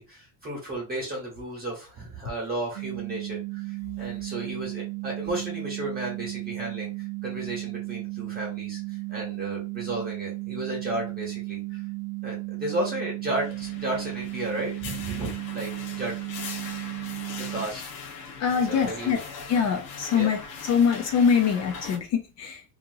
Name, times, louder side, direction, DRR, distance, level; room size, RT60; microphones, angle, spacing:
voice 1, 0.0-11.8 12.2-16.1 17.5-17.9 18.7-19.2 20.1-20.3, right 1 dB, 20° right, 1.1 m, -33 dB
sound 1, 2.8-17.7, right 25 dB, 85° right, 0.6 m, -35 dB
sound 2, 13.4-22.0, left 5 dB, 70° left, 1.0 m, -40 dB
voice 2, 18.4-19.2 19.5-22.6, left 6 dB, 35° left, 0.5 m, -24 dB
2.8 x 2.7 x 2.7 m
cardioid pair, 150°, 46 cm